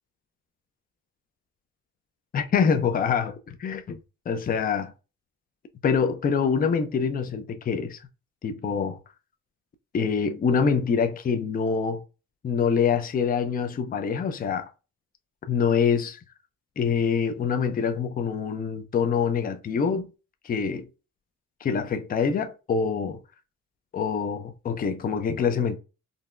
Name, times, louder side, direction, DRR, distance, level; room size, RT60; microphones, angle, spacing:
voice 1, 2.3-4.0 4.3-4.9 5.8-8.0 8.4-9.0 9.9-12.0 12.4-14.7 15.5-16.2 16.8-20.1 20.4-20.9 21.6-23.2 23.9-25.8, left 6 dB, 30° left, 0.4 m, -25 dB
3.8 x 2.1 x 2.4 m
cardioid pair, 90°, 30 cm